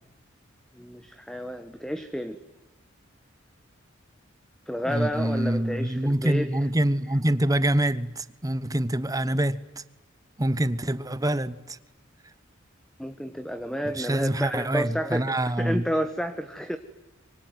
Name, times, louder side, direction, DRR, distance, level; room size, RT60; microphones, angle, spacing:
voice 1, 0.7-2.4 4.7-6.6 13.0-16.8, equal, 5° left, 1.3 m, -31 dB
voice 2, 4.8-9.8 10.4-11.8 13.9-15.8, right 1 dB, 20° right, 1.1 m, -25 dB
25.5 x 24.5 x 9.5 m
head